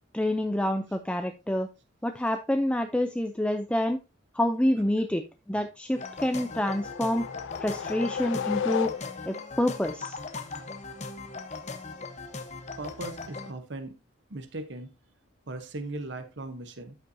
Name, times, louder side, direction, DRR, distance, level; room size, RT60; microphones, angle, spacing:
voice 1, 0.1-1.7 2.0-4.0 4.3-7.3 7.6-8.9 9.3-10.2, left 1 dB, 5° left, 7 dB, 0.4 m, -27 dB
sound 1, 5.9-13.5, left 3 dB, 35° left, 1.0 m, -39 dB
sound 2, 6.2-9.5, left 7 dB, 75° left, 0.4 m, -34 dB
voice 2, 12.8-13.9 14.3-14.9 15.5-16.9, right 2 dB, 65° right, 8 dB, 0.9 m, -38 dB
13.0 x 5.5 x 2.7 m, 0.27 s
head